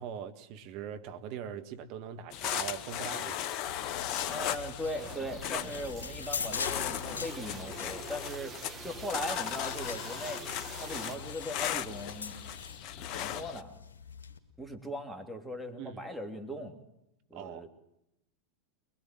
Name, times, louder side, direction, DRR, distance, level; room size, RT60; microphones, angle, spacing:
voice 1, 0.0-3.6 10.9-11.2 15.8-16.0 17.3-17.7, right 8 dB, 50° right, 1.7 m, -42 dB
sound 1, 2.3-13.6, left 11 dB, 45° left, 1.0 m, -37 dB
sound 2, 3.7-14.4, left 5 dB, 75° left, 2.0 m, -43 dB
voice 2, 4.3-10.4 10.8-12.4 13.1-13.7 14.6-16.8 17.3-17.7, equal, ahead, 3.1 m, -39 dB
sound 3, 5.0-11.2, right 6 dB, 25° right, 1.8 m, -46 dB
22.5 x 21.0 x 7.8 m
figure-of-eight pair, 90°, 0 cm